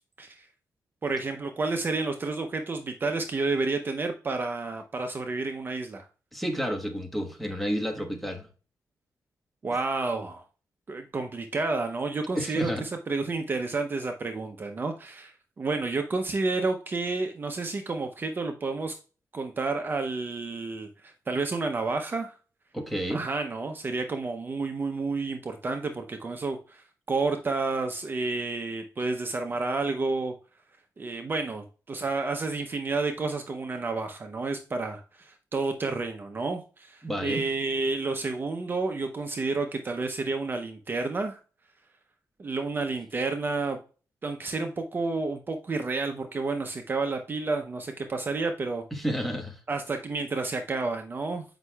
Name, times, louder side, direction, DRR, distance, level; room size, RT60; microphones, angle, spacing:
voice 1, 1.0-6.1 9.6-10.4 10.9-18.9 19.3-22.3 23.1-30.3 31.0-41.4 42.4-43.8 44.2-48.8 49.7-51.4, right 3 dB, 35° right, 0.6 m, -30 dB
voice 2, 6.3-8.5 12.3-12.9 22.7-23.3 37.0-37.4 48.9-49.6, equal, ahead, 1.2 m, -30 dB
8.0 x 5.4 x 2.3 m
wide cardioid pair, 130°, 6 cm